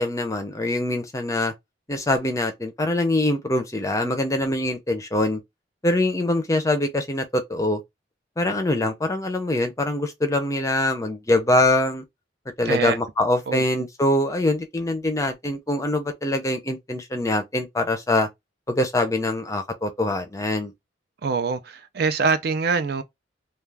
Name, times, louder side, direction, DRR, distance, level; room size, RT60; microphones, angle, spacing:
voice 1, 0.0-1.5 1.9-5.4 5.8-7.8 8.4-12.0 12.6-18.3 18.7-20.7, left 1 dB, 15° left, 0.5 m, -23 dB
voice 2, 12.6-13.0 13.5-13.6 21.2-23.0, right 5 dB, 55° right, 0.4 m, -24 dB
2.3 x 2.2 x 3.3 m
head